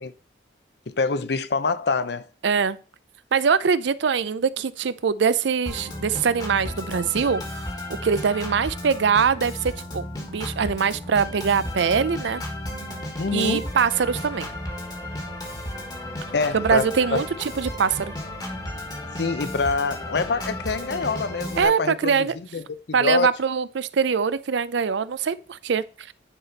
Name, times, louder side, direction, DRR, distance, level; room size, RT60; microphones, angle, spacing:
voice 1, 0.9-2.3 13.2-13.6 16.3-17.2 19.2-22.3 22.5-22.6 23.0-23.3, left 4 dB, 60° left, 0.6 m, -25 dB
voice 2, 2.4-2.8 3.3-7.7 8.0-12.4 13.3-14.5 16.5-18.1 21.6-22.4 22.9-26.1, right 6 dB, 75° right, 0.5 m, -23 dB
Organ, 5.7-21.7, left 1 dB, 20° left, 1.4 m, -34 dB
9.8 x 4.2 x 4.0 m
head